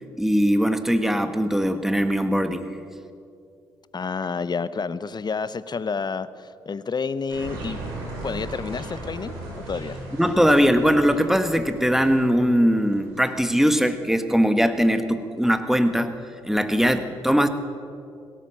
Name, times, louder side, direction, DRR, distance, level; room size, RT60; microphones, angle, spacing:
voice 1, 0.2-2.7 10.1-16.1 16.4-17.5, equal, 5° right, 9 dB, 1.5 m, -20 dB
voice 2, 3.9-7.8 8.2-9.3 9.7-10.0, left 5 dB, 35° left, 16 dB, 0.7 m, -29 dB
sound 1, 7.3-13.5, right 2 dB, 85° right, 3.1 m, -37 dB
17.0 x 13.0 x 6.3 m, 2.5 s
hypercardioid pair, 45°, 12 cm